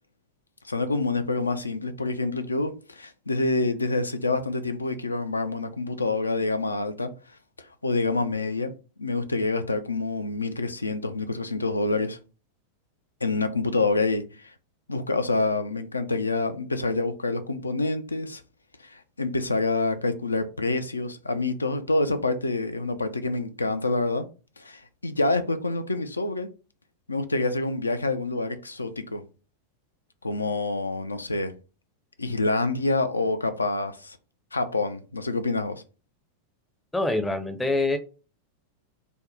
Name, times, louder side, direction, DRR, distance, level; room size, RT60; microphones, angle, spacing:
voice 1, 0.6-7.1 7.8-8.7 9.0-12.2 13.2-14.5 14.9-18.4 18.8-24.3 24.6-26.5 27.1-29.2 30.2-31.5 32.2-34.2 34.5-35.8, left 3 dB, 80° left, 0.3 m, -27 dB
voice 2, 36.9-38.0, left 2 dB, 10° left, 0.5 m, -25 dB
2.6 x 2.2 x 3.6 m
figure-of-eight pair, 90°, 0 cm